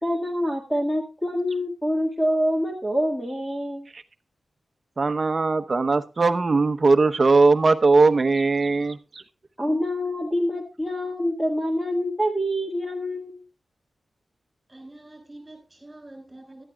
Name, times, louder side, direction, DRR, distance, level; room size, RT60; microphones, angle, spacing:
voice 1, 0.0-3.9 9.6-13.4, equal, 5° left, 1.7 m, -26 dB
voice 2, 5.0-9.2, right 3 dB, 35° right, 0.9 m, -20 dB
voice 3, 14.7-16.6, right 1 dB, 15° right, 5.6 m, -45 dB
18.0 x 12.0 x 2.3 m
wide cardioid pair, 170°, 0 cm